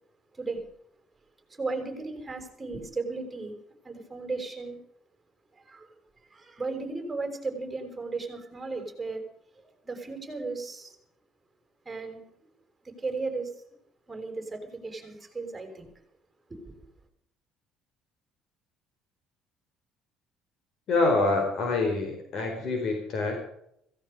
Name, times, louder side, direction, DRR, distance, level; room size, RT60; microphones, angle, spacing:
voice 1, 1.5-3.6 3.8-4.8 5.5-5.9 6.2-9.2 9.8-11.0 11.9-12.2 12.8-13.5 14.1-15.9 16.5-16.7, right 3 dB, 15° right, 4 dB, 5.4 m, -35 dB
voice 2, 20.9-23.4, left 3 dB, 55° left, 3 dB, 4.8 m, -26 dB
17.0 x 16.5 x 5.1 m, 0.73 s
cardioid pair, 120°, 0 cm